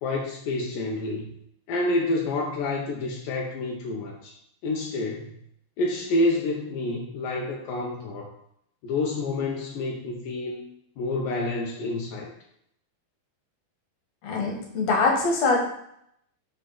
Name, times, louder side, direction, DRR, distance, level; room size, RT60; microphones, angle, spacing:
voice 1, 0.0-1.3 1.7-4.3 4.6-5.3 5.8-8.3 8.8-10.7 11.0-12.3, left 2 dB, 85° left, -1 dB, 1.9 m, -28 dB
voice 2, 14.2-15.6, left 3 dB, 55° left, -1 dB, 1.9 m, -23 dB
7.7 x 4.3 x 5.8 m, 0.73 s
omnidirectional pair, 5.3 m